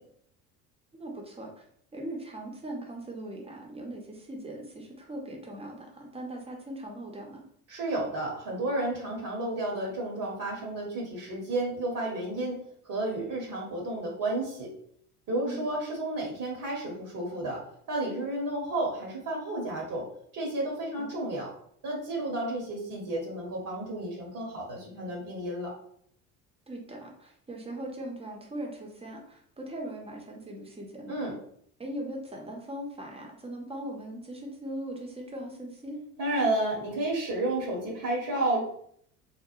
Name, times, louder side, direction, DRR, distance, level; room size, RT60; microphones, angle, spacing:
voice 1, 1.0-1.6 1.9-7.4 15.4-15.6 21.0-21.2 26.7-31.2 31.8-36.0, right 1 dB, 15° right, 0 dB, 0.7 m, -40 dB
voice 2, 7.7-14.7 15.3-17.6 17.9-20.0 20.3-21.5 21.8-25.7 31.1-31.3 36.2-38.6, right 1 dB, 45° right, -1 dB, 0.9 m, -31 dB
3.0 x 2.0 x 2.4 m, 0.65 s
figure-of-eight pair, 60°, 46 cm